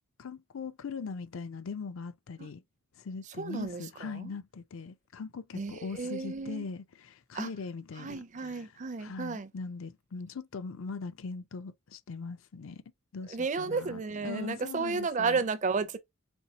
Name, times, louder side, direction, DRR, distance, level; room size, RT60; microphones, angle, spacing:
voice 1, 0.2-2.6 3.0-8.7 9.0-12.8 13.1-15.4, left 4 dB, 65° left, 0.5 m, -41 dB
voice 2, 3.4-4.3 5.5-6.7 7.3-7.5 8.0-9.5 13.3-16.0, right 4 dB, 35° right, 0.4 m, -33 dB
4.4 x 3.2 x 2.8 m
head